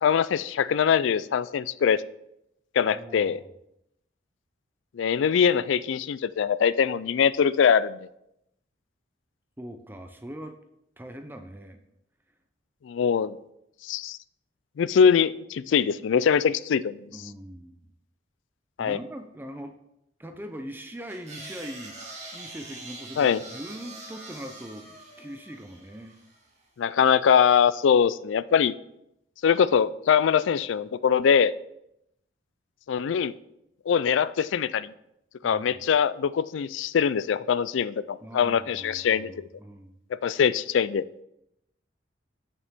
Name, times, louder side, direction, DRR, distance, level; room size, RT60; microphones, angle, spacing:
voice 1, 0.0-2.0 2.7-3.4 4.9-8.0 12.8-13.4 13.8-14.2 14.8-17.0 18.8-19.0 23.2-23.4 26.8-28.7 29.4-31.5 32.9-33.3 33.9-34.9 35.4-39.5 40.2-41.0, left 7 dB, 80° left, 17 dB, 0.3 m, -22 dB
voice 2, 2.9-3.5 9.6-10.6 11.0-11.8 17.1-17.9 18.8-19.7 20.2-22.0 22.3-26.2 35.4-35.8 38.2-40.0, equal, 10° right, 6 dB, 0.5 m, -41 dB
sound 1, 21.1-26.4, right 2 dB, 35° right, 1.9 m, -44 dB
8.5 x 6.7 x 3.6 m, 0.81 s
head